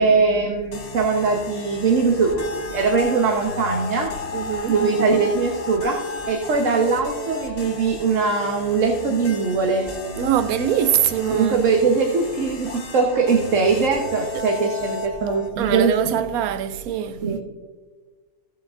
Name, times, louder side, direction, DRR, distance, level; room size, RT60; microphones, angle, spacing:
voice 1, 0.0-2.4 2.7-4.1 4.7-6.0 6.3-9.8 11.3-16.1 17.2-17.4, right 4 dB, 60° right, 1.4 m, -21 dB
sound 1, 0.7-15.5, left 3 dB, 40° left, 1.2 m, -36 dB
sound 2, 2.0-6.4, left 5 dB, 60° left, 0.7 m, -33 dB
voice 2, 4.3-4.8 10.2-11.7 15.6-17.2, right 10 dB, 80° right, 1.1 m, -23 dB
16.5 x 7.5 x 2.5 m
omnidirectional pair, 1.5 m